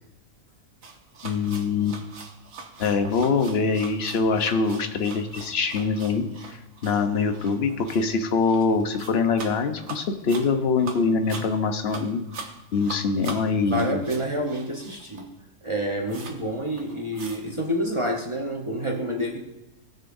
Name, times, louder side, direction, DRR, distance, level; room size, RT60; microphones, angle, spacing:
sound 1, 0.8-15.4 15.7-15.8 16.1-16.4 16.7-17.5, right 4 dB, 80° right, 1.5 m, -42 dB
voice 1, 1.2-2.0 2.8-12.2 12.7-14.0, left 4 dB, 55° left, 6 dB, 1.0 m, -24 dB
voice 2, 13.7-15.3 15.6-19.4, right 1 dB, 25° right, 0 dB, 0.9 m, -28 dB
18.5 x 6.5 x 2.6 m, 0.92 s
omnidirectional pair, 1.4 m